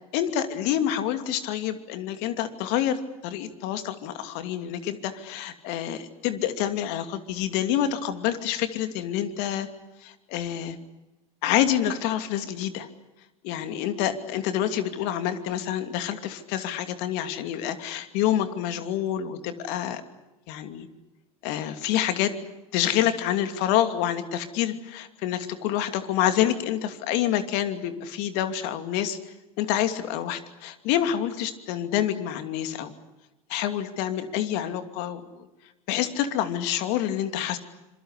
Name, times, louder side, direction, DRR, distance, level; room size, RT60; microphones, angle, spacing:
voice 1, 0.1-9.7 10.0-10.8 11.4-12.9 13.4-20.0 20.5-20.9 21.4-22.4 22.7-29.2 29.6-32.9 33.5-35.5 35.9-37.6, left 11 dB, 65° left, 9 dB, 2.7 m, -27 dB
26.5 x 22.5 x 8.2 m, 1.0 s
hypercardioid pair, 100°, 18 cm